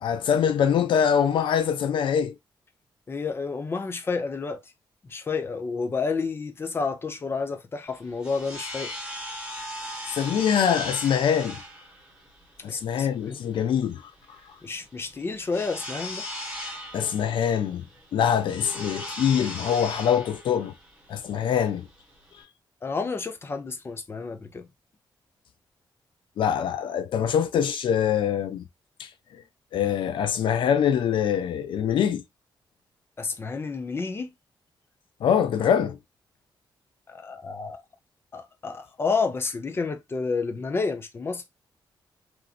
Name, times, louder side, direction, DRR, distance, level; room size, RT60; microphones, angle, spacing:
voice 1, 0.0-2.4 10.1-11.6 12.6-14.0 16.9-17.8 18.1-20.7 21.1-21.9 26.4-28.6 29.0-29.1 29.7-32.2 35.2-36.0, left 8 dB, 75° left, 0.4 m, -24 dB
voice 2, 3.1-4.6 5.1-8.9 12.7-13.4 14.6-16.2 22.8-24.6 33.2-34.3 37.1-37.8 38.3-41.4, left 4 dB, 30° left, 0.6 m, -30 dB
sound 1, 7.9-22.4, left 1 dB, 15° right, 1.2 m, -38 dB
3.0 x 2.6 x 2.3 m
wide cardioid pair, 130°, 9 cm